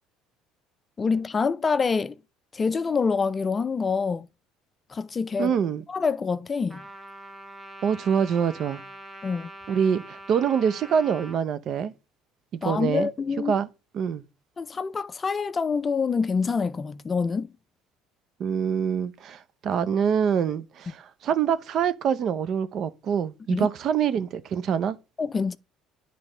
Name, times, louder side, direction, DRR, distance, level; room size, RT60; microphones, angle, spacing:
voice 1, 1.0-2.2 2.5-4.3 4.9-5.5 5.9-6.8 9.2-9.5 12.6-13.6 14.6-17.5 23.5-23.7 25.2-25.6, left 5 dB, 30° left, 0.4 m, -26 dB
voice 2, 5.4-5.8 7.8-8.8 9.7-11.9 12.6-13.1 13.5-13.7 13.9-14.2 18.4-25.0, right 7 dB, 55° right, 0.7 m, -25 dB
Trumpet, 6.7-11.4, right 1 dB, 15° right, 1.1 m, -43 dB
9.8 x 3.4 x 3.8 m
supercardioid pair, 75°, 0 cm